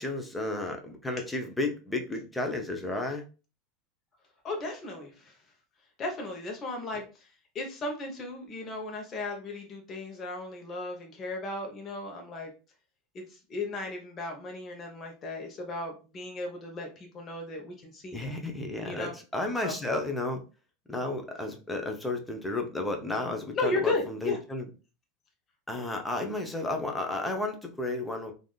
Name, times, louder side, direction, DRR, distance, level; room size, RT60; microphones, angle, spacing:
voice 1, 0.0-3.2 6.9-7.0 18.1-20.4 20.9-24.7 25.7-28.3, left 2 dB, 10° left, 3 dB, 0.8 m, -32 dB
voice 2, 4.4-5.3 6.0-7.3 7.5-12.5 13.1-18.4 18.8-19.1 19.6-19.8 23.5-24.4, left 2 dB, 35° left, 1 dB, 1.0 m, -35 dB
3.4 x 2.6 x 2.3 m, 0.33 s
hypercardioid pair, 105°, 0 cm